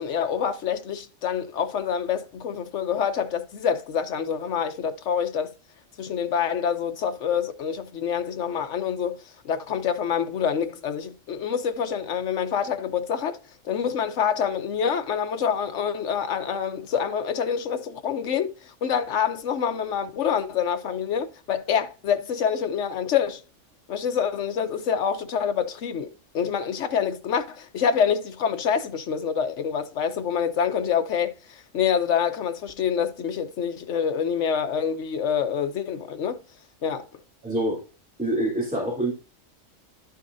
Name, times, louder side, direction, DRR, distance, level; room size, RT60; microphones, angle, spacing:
voice 1, 0.0-5.5 6.0-9.2 9.4-13.4 13.6-23.4 23.9-36.4 36.8-37.1, left 7 dB, 70° left, 1.2 m, -26 dB
voice 2, 37.4-37.8 38.2-39.1, right 1 dB, 5° right, 3.3 m, -25 dB
11.5 x 6.4 x 2.7 m
omnidirectional pair, 1.3 m